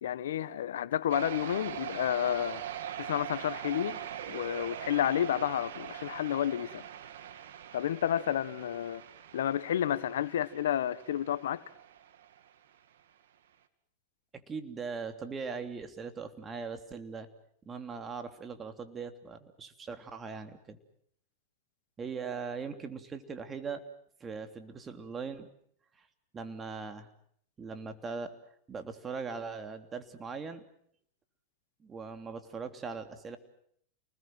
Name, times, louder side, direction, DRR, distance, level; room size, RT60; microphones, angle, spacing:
voice 1, 0.0-2.6 3.0-4.0 4.3-6.8 7.7-9.0 9.3-11.6, left 10 dB, 80° left, 1.4 m, -31 dB
sound 1, 1.1-12.5, right 10 dB, 75° right, 2.3 m, -42 dB
voice 2, 14.3-17.3 17.6-20.8 22.0-23.8 24.2-25.5 26.0-26.1 26.3-27.1 27.6-28.3 28.7-30.6 31.8-33.4, right 5 dB, 25° right, 3.1 m, -40 dB
29.5 x 20.5 x 7.8 m
hypercardioid pair, 105°, 0 cm